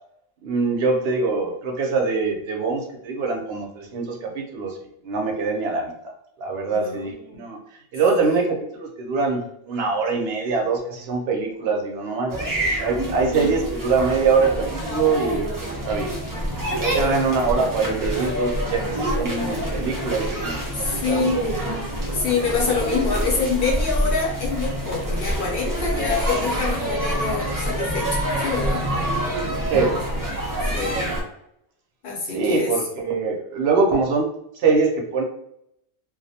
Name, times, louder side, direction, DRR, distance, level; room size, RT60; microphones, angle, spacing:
voice 1, 0.4-4.8 5.0-5.9 6.4-7.6 7.9-16.1 16.8-21.3 29.6-30.0 32.3-34.3 34.6-35.2, right 4 dB, 75° right, 2 dB, 0.8 m, -23 dB
voice 2, 6.7-7.4 8.3-8.4 16.8-17.2 20.1-20.2 20.7-21.4 22.1-28.9 30.7-31.1 32.0-32.8, left 4 dB, 65° left, -2 dB, 0.8 m, -26 dB
sound 1, 12.3-31.2, right 1 dB, 35° right, 0.3 m, -26 dB
2.3 x 2.0 x 2.7 m, 0.75 s
omnidirectional pair, 1.1 m